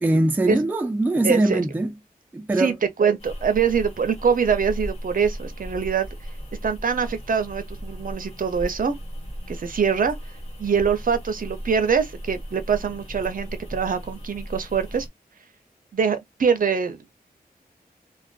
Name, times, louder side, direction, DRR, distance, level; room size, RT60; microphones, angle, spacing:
voice 1, 0.0-1.9 2.3-2.7, right 2 dB, 10° right, 0.4 m, -22 dB
voice 2, 1.2-1.6 2.6-2.7 3.0-6.1 6.6-9.0 9.5-10.2 10.6-15.1 15.9-17.0, right 6 dB, 60° right, 0.6 m, -23 dB
sound 1, 3.2-15.1, equal, 40° left, 1.1 m, -36 dB
2.4 x 2.2 x 2.3 m
wide cardioid pair, 115°, 16 cm